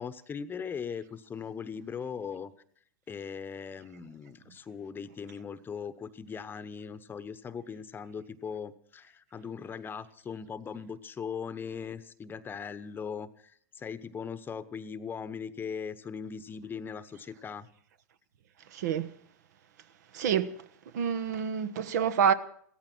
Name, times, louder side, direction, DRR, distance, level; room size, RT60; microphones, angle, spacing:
voice 1, 0.0-2.5 3.1-17.7, left 6 dB, 20° left, 0.9 m, -39 dB
voice 2, 18.7-19.1 20.1-20.5 20.9-22.3, right 7 dB, 70° right, 1.1 m, -27 dB
16.0 x 14.0 x 6.2 m
hypercardioid pair, 100°, 10 cm